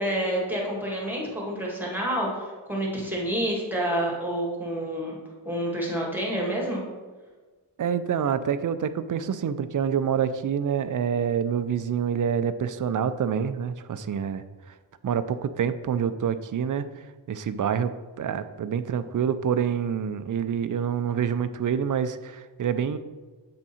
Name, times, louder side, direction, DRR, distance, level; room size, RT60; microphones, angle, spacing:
voice 1, 0.0-5.2 5.5-6.9, right 1 dB, 5° right, -3 dB, 1.8 m, -28 dB
voice 2, 7.8-14.4 15.0-16.8 17.3-23.0, right 8 dB, 45° right, 12 dB, 0.4 m, -27 dB
7.7 x 3.6 x 4.2 m, 1.3 s
cardioid pair, 70°, 44 cm